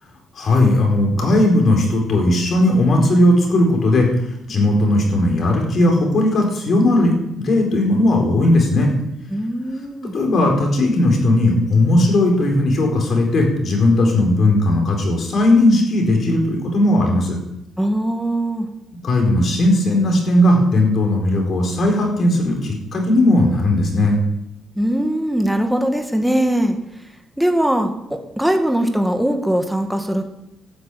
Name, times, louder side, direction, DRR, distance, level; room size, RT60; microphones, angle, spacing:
voice 1, 0.4-4.1 4.5-8.9 10.1-17.4 19.0-24.2, left 1 dB, 55° left, 1 dB, 4.3 m, -17 dB
voice 2, 9.3-10.2 17.8-18.7 24.7-26.8 27.4-30.2, right 1 dB, 5° right, 5 dB, 1.7 m, -20 dB
12.5 x 6.5 x 8.5 m, 0.83 s
cardioid pair, 90°, 0 cm